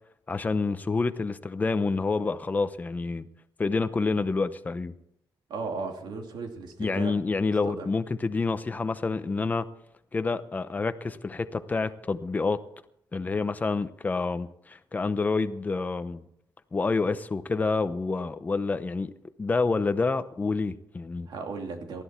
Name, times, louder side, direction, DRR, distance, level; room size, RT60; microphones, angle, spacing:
voice 1, 0.3-3.3 3.6-4.9 6.8-9.7 10.1-12.6 13.1-16.2 16.7-19.1 19.4-21.3, left 4 dB, 20° left, 11 dB, 0.8 m, -28 dB
voice 2, 5.5-7.1 7.6-7.9 21.3-22.0, right 4 dB, 70° right, 3 dB, 2.8 m, -36 dB
19.5 x 13.5 x 4.5 m, 0.74 s
wide cardioid pair, 155°, 8 cm